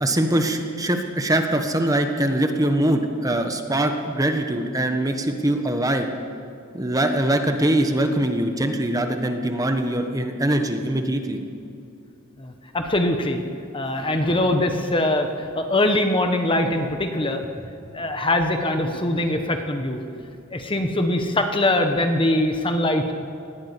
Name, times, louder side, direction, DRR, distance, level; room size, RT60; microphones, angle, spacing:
voice 1, 0.0-6.1 6.7-11.4, right 1 dB, 15° right, 5 dB, 1.3 m, -22 dB
voice 2, 12.4-13.4 13.7-17.4 17.9-23.1, left 1 dB, 25° left, 5 dB, 1.4 m, -22 dB
20.5 x 15.5 x 8.5 m, 2.6 s
head